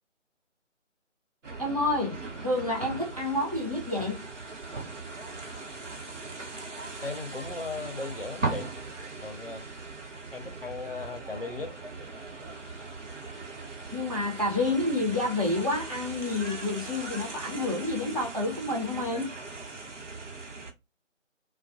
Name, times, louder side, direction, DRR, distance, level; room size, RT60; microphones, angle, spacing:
sound 1, 1.4-20.7, right 3 dB, 70° right, 1.0 m, -39 dB
voice 1, 1.6-4.2 13.9-19.3, left 2 dB, 30° right, 0.8 m, -29 dB
voice 2, 7.0-8.7 9.2-9.6 10.3-11.7, left 3 dB, 50° left, 0.6 m, -37 dB
2.2 x 2.2 x 2.6 m
figure-of-eight pair, 160°, 38 cm